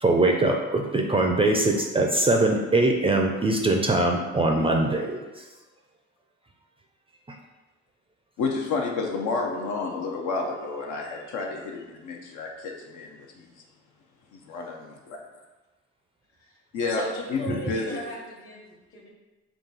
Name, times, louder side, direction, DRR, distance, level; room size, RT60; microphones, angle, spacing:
voice 1, 0.0-5.4, right 2 dB, 20° right, 1 dB, 0.4 m, -22 dB
voice 2, 8.4-13.5 14.3-15.2 16.7-17.0 17.3-18.0, left 4 dB, 75° left, 1 dB, 0.6 m, -30 dB
voice 3, 16.9-19.1, left 1 dB, 45° left, -2 dB, 1.1 m, -37 dB
3.8 x 2.3 x 3.9 m, 1.2 s
cardioid pair, 90°, 30 cm